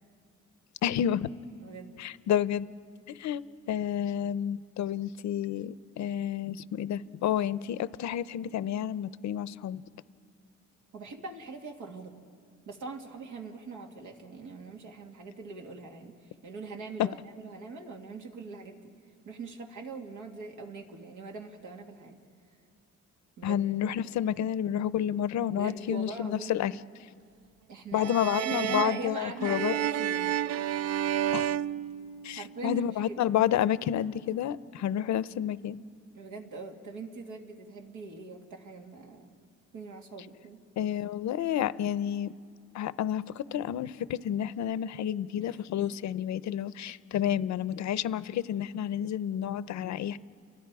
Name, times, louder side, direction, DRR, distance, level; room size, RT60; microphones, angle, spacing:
voice 1, 0.8-1.3 2.0-2.7 3.1-3.4 3.7-9.8 17.0-17.1 23.4-26.7 27.9-29.7 31.3-31.6 32.2-35.8 40.8-42.3 42.7-50.2, left 10 dB, 65° left, 16 dB, 0.7 m, -30 dB
voice 2, 1.6-2.0 10.9-12.2 12.7-18.9 19.3-22.2 23.4-23.6 23.9-24.2 25.5-26.6 27.7-31.2 32.3-33.2 36.1-39.3 39.7-40.6 45.4-45.6, right 3 dB, 90° right, 2 dB, 2.4 m, -42 dB
sound 1, 28.0-32.6, right 11 dB, 55° right, 0.5 m, -31 dB
29.5 x 23.5 x 4.8 m, 2.2 s
cardioid pair, 90°, 30 cm